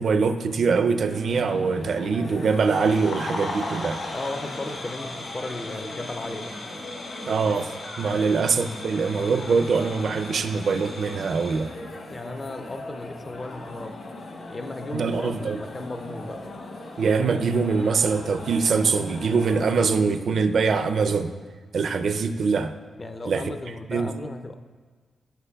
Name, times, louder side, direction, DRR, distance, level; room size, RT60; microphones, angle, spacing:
voice 1, 0.0-4.0 7.3-7.7 8.0-11.7 14.9-15.6 17.0-21.3 21.7-22.7 23.3-23.4 23.9-24.1, right 5 dB, 55° right, 9 dB, 0.4 m, -23 dB
sound 1, 1.1-19.9, left 2 dB, 55° left, 1.1 m, -40 dB
sound 2, 2.6-11.7, left 2 dB, 75° left, 2.5 m, -37 dB
voice 2, 4.1-6.6 8.1-8.3 12.1-13.9 14.5-16.4 23.0-24.6, left 2 dB, 25° left, 9 dB, 0.4 m, -35 dB
14.5 x 6.2 x 2.3 m, 1.5 s
wide cardioid pair, 160°, 0 cm